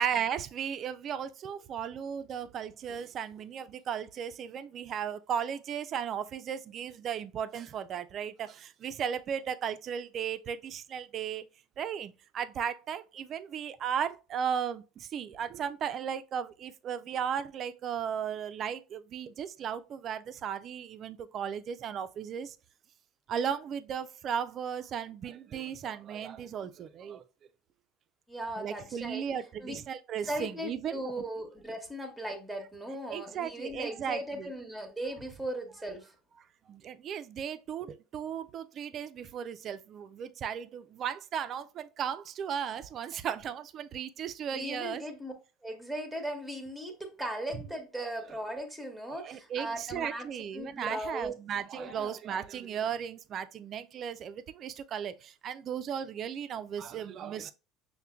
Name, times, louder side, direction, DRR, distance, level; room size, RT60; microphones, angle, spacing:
voice 1, 0.0-11.4 11.8-22.6 23.3-27.2 28.6-31.1 33.1-34.5 36.7-45.0 49.1-57.5, right 8 dB, 45° right, 0.3 m, -36 dB
voice 2, 28.3-29.3 29.6-29.7 30.2-36.1 44.5-45.3 45.6-50.3 50.5-51.3 51.8-52.1, right 1 dB, ahead, 0.9 m, -38 dB
5.4 x 2.1 x 2.3 m
hypercardioid pair, 85°, 0 cm